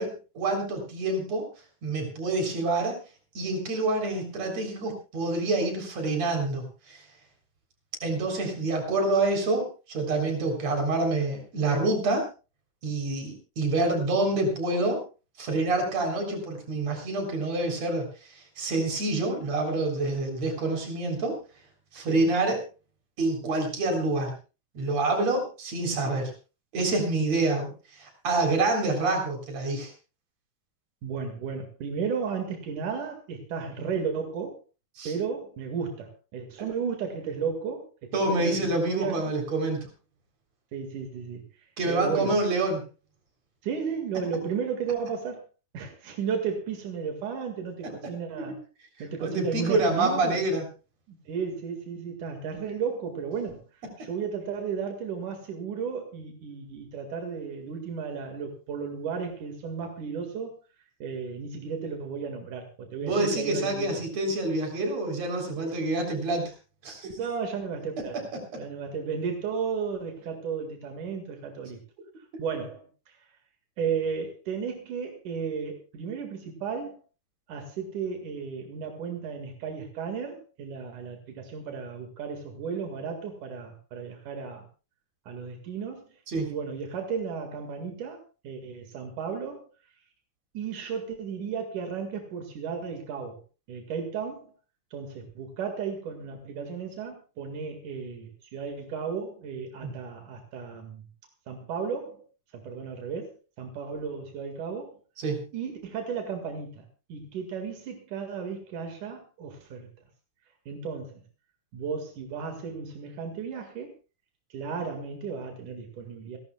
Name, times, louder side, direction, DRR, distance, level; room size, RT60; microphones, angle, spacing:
voice 1, 0.0-1.5 1.8-3.0 3.3-7.0 8.0-12.3 12.8-15.0 15.4-18.1 18.3-21.4 21.9-22.6 23.2-24.3 24.7-26.3 26.7-29.9 35.0-35.1 38.1-39.8 41.8-42.8 48.4-48.6 49.2-50.7 63.0-66.5 66.8-67.1 68.5-68.6 86.3-86.5 99.8-99.9 105.2-105.5, right 2 dB, 60° right, 3 dB, 4.9 m, -27 dB
voice 2, 31.0-34.6 35.1-37.9 38.3-39.3 40.7-41.4 41.9-42.4 43.6-45.4 45.7-48.6 49.0-50.4 51.1-53.6 54.0-60.5 61.0-64.0 67.0-68.2 68.6-71.8 72.4-72.9 73.8-77.0 77.5-84.7 85.3-86.1 86.5-89.7 90.5-93.4 93.7-94.5 94.9-101.1 101.5-102.2 102.5-105.0 105.5-109.9 110.7-111.2 111.7-113.9 114.5-116.4, right 6 dB, 90° right, 4 dB, 3.5 m, -34 dB
29.0 x 12.0 x 2.3 m, 0.32 s
omnidirectional pair, 3.5 m